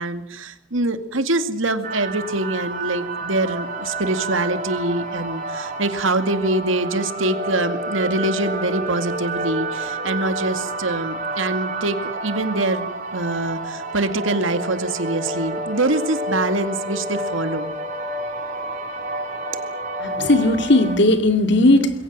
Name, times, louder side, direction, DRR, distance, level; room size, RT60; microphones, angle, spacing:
voice 1, 0.0-12.8 13.1-17.7, right 2 dB, 80° right, 9 dB, 2.3 m, -24 dB
sound 1, 1.8-21.0, right 2 dB, 40° right, 4.3 m, -29 dB
voice 2, 20.0-22.0, left 1 dB, 60° left, 8 dB, 2.6 m, -17 dB
26.0 x 22.0 x 7.5 m, 0.75 s
head